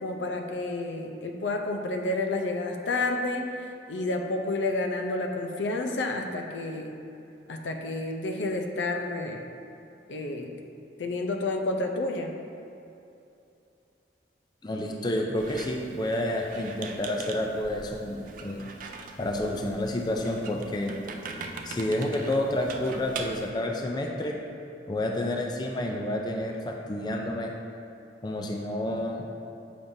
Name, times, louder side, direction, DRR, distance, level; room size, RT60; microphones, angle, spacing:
voice 1, 0.0-7.0 7.5-9.5 10.1-10.5 11.0-12.3, left 2 dB, 90° left, 4 dB, 0.5 m, -30 dB
voice 2, 14.6-18.7 19.2-20.9 21.6-24.4 24.9-27.5 28.2-29.5, left 1 dB, 25° left, 1 dB, 0.4 m, -29 dB
Squeak, 15.4-23.5, right 4 dB, 45° right, 0.4 m, -42 dB
7.1 x 5.1 x 2.7 m, 2.7 s
head